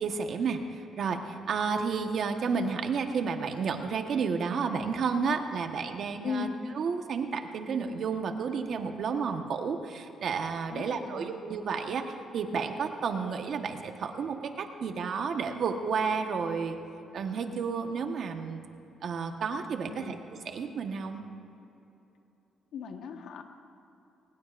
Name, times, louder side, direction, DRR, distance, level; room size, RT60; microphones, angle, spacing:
voice 1, 0.0-6.5 6.7-16.8 17.1-18.6 19.0-20.2 20.4-21.2, right 5 dB, 60° right, 5 dB, 1.2 m, -31 dB
voice 2, 6.2-6.6 10.7-11.4 19.9-20.2 22.7-23.4, left 6 dB, 75° left, 5 dB, 1.3 m, -37 dB
22.0 x 19.5 x 2.5 m, 3.0 s
cardioid pair, 90°, 0 cm